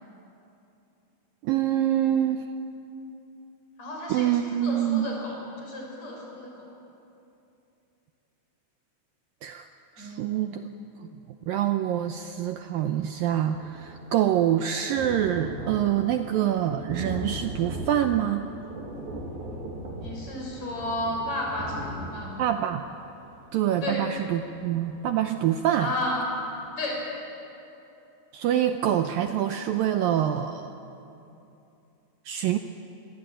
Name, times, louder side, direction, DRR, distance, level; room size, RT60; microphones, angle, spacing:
voice 1, 1.4-2.4 4.1-5.1 9.4-9.7 10.0-10.6 11.5-18.5 22.4-22.8 23.5-25.9 28.3-30.7 32.3-32.6, right 11 dB, 85° right, 7 dB, 2.0 m, -25 dB
voice 2, 3.8-4.3 4.6-6.7 10.0-10.5 20.0-22.5 23.8-24.1 25.8-26.2 26.8-27.1, left 1 dB, 40° left, -1 dB, 7.7 m, -33 dB
Thunder, 12.5-12.6 12.8-25.4 25.9-26.0 26.3-26.4, right 1 dB, 55° right, 4.9 m, -39 dB
27.5 x 22.5 x 9.0 m, 2.8 s
omnidirectional pair, 5.1 m